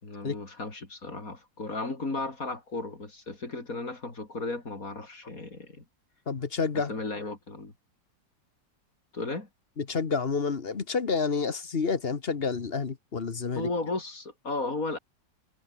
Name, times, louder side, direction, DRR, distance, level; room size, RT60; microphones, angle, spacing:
voice 1, 0.0-5.8 6.9-7.7 9.1-9.5 13.5-15.0, left 3 dB, 55° left, 4.7 m, -35 dB
voice 2, 6.3-6.9 9.8-13.7, left 5 dB, 35° left, 1.4 m, -29 dB
omnidirectional pair, 1.8 m